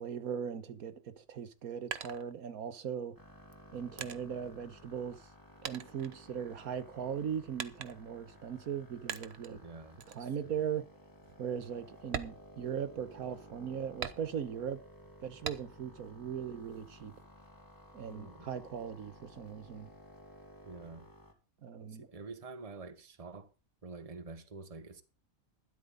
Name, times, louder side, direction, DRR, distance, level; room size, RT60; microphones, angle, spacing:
voice 1, 0.0-3.2 3.7-5.3 5.6-9.6 10.1-10.9 11.4-14.8 15.2-17.1 17.9-19.9 21.6-22.1, right 8 dB, 90° right, 1.6 m, -39 dB
sound 1, 1.4-2.9 3.5-5.4 5.6-6.8 7.6-8.2 9.1-9.6 10.0-10.3 10.7-10.8 11.2-11.4 12.0-13.2 14.0-14.7 15.4-16.0 16.4-17.2, right 7 dB, 50° right, 1.1 m, -43 dB
sound 2, 3.2-21.3, equal, 15° left, 2.8 m, -56 dB
voice 2, 9.5-10.3 18.1-18.5 20.6-21.1 21.8-23.5 23.8-25.0, right 3 dB, 25° right, 1.3 m, -48 dB
13.0 x 12.5 x 4.0 m
omnidirectional pair, 1.5 m